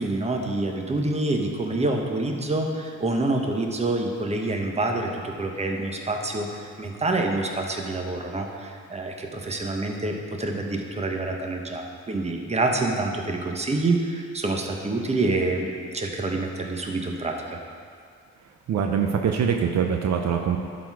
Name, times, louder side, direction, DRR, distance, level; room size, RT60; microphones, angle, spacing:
voice 1, 0.0-17.5, right 2 dB, 20° right, 2 dB, 1.0 m, -27 dB
voice 2, 18.7-20.6, right 7 dB, 65° right, 3 dB, 0.7 m, -23 dB
11.5 x 4.2 x 4.7 m, 2.2 s
cardioid pair, 90°, 30 cm